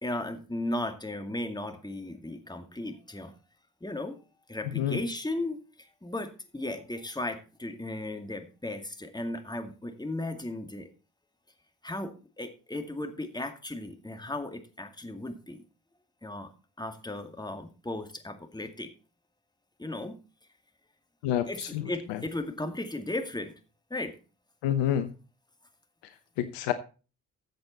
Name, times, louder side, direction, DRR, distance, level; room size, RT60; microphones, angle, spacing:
voice 1, 0.0-3.3 3.8-4.2 4.5-10.9 11.8-15.6 16.2-16.5 16.8-18.9 19.8-20.1 21.5-23.5 23.9-24.2, left 1 dB, 10° left, 2.2 m, -36 dB
voice 2, 21.2-21.8 22.1-22.2 24.6-25.1 26.4-26.7, left 11 dB, 75° left, 0.9 m, -28 dB
14.0 x 7.7 x 4.1 m
hypercardioid pair, 40°, 43 cm